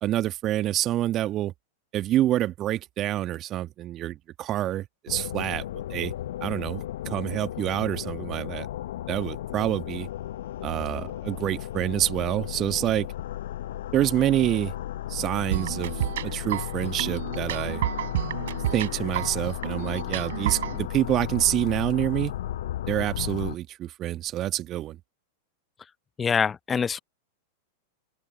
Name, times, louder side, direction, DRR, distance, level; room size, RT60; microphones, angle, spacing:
voice 1, 0.0-1.5 1.9-5.6 5.9-6.1 6.4-8.7 9.1-10.1 10.6-13.1 13.9-14.7 15.1-15.9 16.2-17.8 18.7-22.3 22.9-25.0, right 13 dB, 35° right, 1.6 m, -27 dB
sound 1, 5.1-23.6, left 12 dB, 65° left, 0.8 m, -34 dB
sound 2, 15.5-20.8, right 13 dB, 65° right, 4.7 m, -31 dB
voice 2, 26.2-27.0, left 6 dB, 20° left, 0.9 m, -24 dB
open air
figure-of-eight pair, 95°, 0 cm